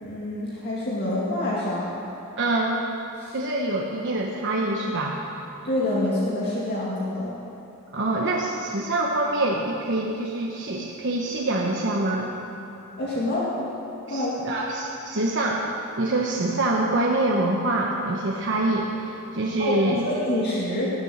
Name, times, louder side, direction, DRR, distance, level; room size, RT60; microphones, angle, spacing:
voice 1, 0.0-1.9 3.2-3.4 5.6-7.4 13.0-13.5 14.1-14.4 19.6-20.9, left 1 dB, 50° left, -6 dB, 2.1 m, -26 dB
voice 2, 2.4-2.8 3.3-5.2 7.9-12.3 14.1-15.7 16.0-20.0, right 2 dB, 60° right, -2 dB, 1.1 m, -25 dB
19.5 x 7.1 x 7.3 m, 3.0 s
head